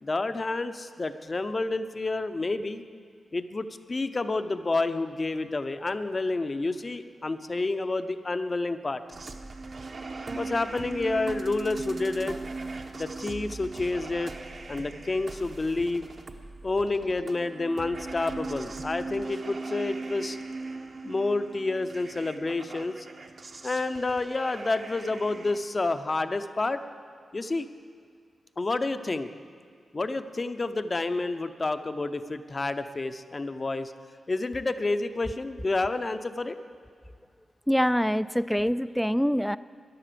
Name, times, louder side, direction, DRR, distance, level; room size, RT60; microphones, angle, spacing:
voice 1, 0.0-2.8 3.3-9.0 10.3-12.4 12.9-14.3 14.7-16.1 16.6-20.4 21.0-23.1 23.6-26.8 27.3-27.7 28.6-29.3 29.9-33.9 34.3-36.6, left 2 dB, 35° left, 10 dB, 0.6 m, -29 dB
sound 1, 9.1-25.6, right 3 dB, 50° right, 1.0 m, -39 dB
voice 2, 37.7-39.6, equal, ahead, 15 dB, 0.3 m, -25 dB
13.5 x 10.5 x 6.9 m, 2.1 s
wide cardioid pair, 85°, 0 cm